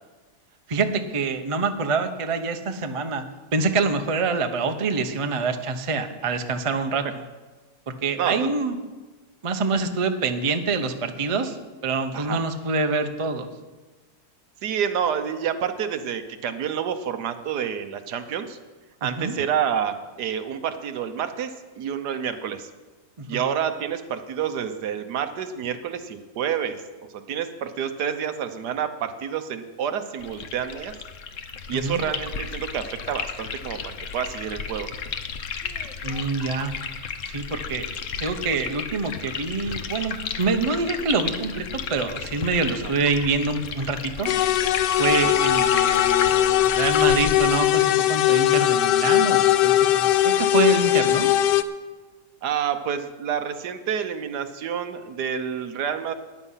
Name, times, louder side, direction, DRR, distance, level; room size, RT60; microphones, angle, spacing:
voice 1, 0.7-3.2 3.5-7.2 7.9-8.8 9.4-13.5 19.0-19.3 23.2-23.4 31.7-32.0 36.0-36.7 37.3-37.9 38.2-44.3 45.0-51.3, right 4 dB, 35° right, 7 dB, 0.5 m, -26 dB
voice 2, 8.1-8.5 12.1-12.4 14.6-18.6 19.0-22.7 23.3-26.8 27.1-30.9 31.7-34.9 45.2-45.3 52.4-56.1, right 8 dB, 70° right, 9 dB, 1.4 m, -28 dB
sound 1, 30.2-47.4, left 6 dB, 55° left, 1.0 m, -33 dB
sound 2, 44.3-51.6, left 13 dB, 85° left, 1.2 m, -20 dB
13.5 x 9.9 x 5.6 m, 1.3 s
omnidirectional pair, 1.8 m